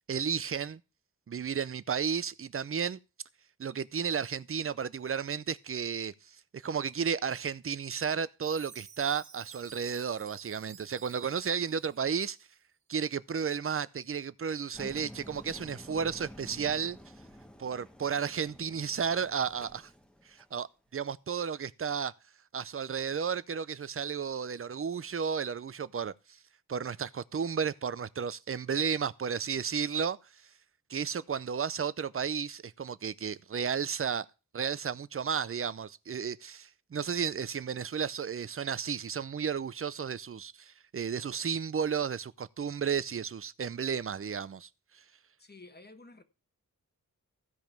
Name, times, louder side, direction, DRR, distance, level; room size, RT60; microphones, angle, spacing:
voice 1, 0.1-0.8 1.3-3.0 3.6-12.4 12.9-17.0 17.6-19.9 20.3-22.1 22.5-26.4 26.7-30.2 30.9-34.3 34.5-44.7 44.9-45.0, right 7 dB, 40° right, 0.6 m, -33 dB
Chime, 8.4-12.4, right 7 dB, 85° right, 0.9 m, -53 dB
Engine, 14.7-20.6, equal, 5° left, 1.1 m, -50 dB
voice 2, 45.4-46.2, left 2 dB, 30° left, 1.2 m, -51 dB
15.5 x 5.3 x 6.0 m
wide cardioid pair, 125°, 35 cm